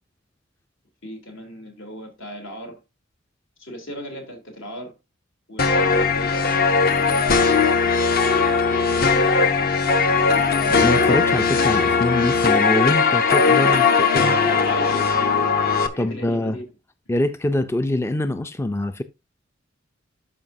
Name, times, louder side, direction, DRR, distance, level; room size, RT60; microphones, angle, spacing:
voice 1, 1.0-2.8 3.6-4.9 5.5-6.5 10.0-10.5 13.9-15.5 15.9-16.6, equal, 75° left, 3.2 m, -37 dB
sound 1, 5.6-15.9, left 5 dB, 50° left, 0.9 m, -19 dB
voice 2, 10.8-14.4 16.0-16.6 17.1-19.0, left 1 dB, 15° left, 0.4 m, -24 dB
12.5 x 5.2 x 2.7 m
head